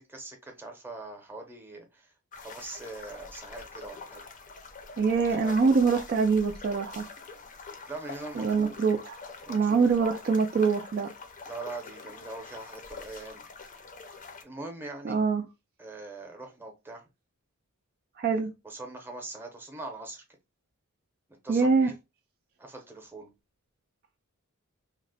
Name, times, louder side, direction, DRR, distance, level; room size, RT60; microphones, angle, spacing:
voice 1, 0.0-4.2 5.2-5.9 7.9-8.8 9.5-10.2 11.4-13.4 14.4-15.2 15.8-17.0 18.6-20.2 21.4-21.9 22.6-23.3, right 2 dB, 10° right, 0.7 m, -42 dB
sound 1, 2.3-14.4, left 4 dB, 35° left, 0.5 m, -45 dB
voice 2, 5.0-7.0 8.3-9.2 9.5-11.1 15.0-15.4 18.2-18.5 21.5-21.9, right 5 dB, 45° right, 0.3 m, -24 dB
2.9 x 2.1 x 3.9 m
head